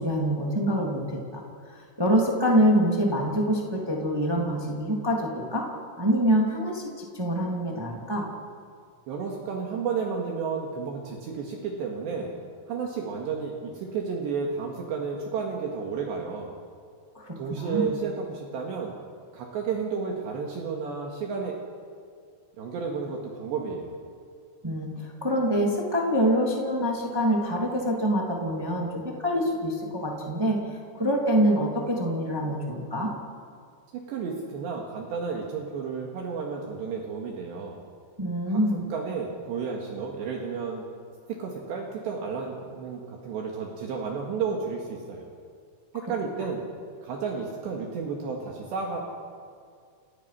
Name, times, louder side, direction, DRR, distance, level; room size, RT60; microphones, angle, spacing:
voice 1, 0.0-5.6 6.0-8.2 17.1-17.9 24.6-33.1 38.2-38.9, equal, 25° right, -1 dB, 0.5 m, -25 dB
voice 2, 9.1-12.3 12.7-16.6 17.4-18.9 19.3-21.6 22.6-23.9 33.9-37.8 38.5-38.6 38.9-40.8 41.3-45.3 45.9-46.6 47.0-49.0, right 5 dB, 65° right, 0 dB, 3.7 m, -32 dB
29.5 x 18.5 x 5.9 m, 2.2 s
omnidirectional pair, 5.8 m